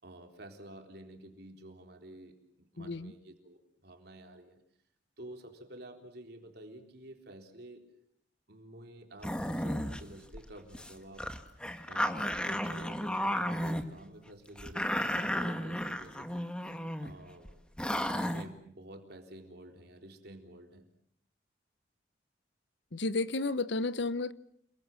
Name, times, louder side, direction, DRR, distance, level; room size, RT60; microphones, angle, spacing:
voice 1, 0.0-4.6 5.2-7.8 8.5-11.2 11.9-16.5 17.0-17.6 18.0-20.9, right 1 dB, 55° right, 3.9 m, -50 dB
voice 2, 2.8-3.1 22.9-24.3, left 3 dB, 65° left, 1.0 m, -32 dB
sound 1, 9.2-10.0 10.3-10.4 10.7-10.9 11.2-13.8 14.6-17.1 17.4-17.5 17.8-18.4, equal, 5° left, 1.5 m, -33 dB
29.0 x 22.0 x 7.6 m
head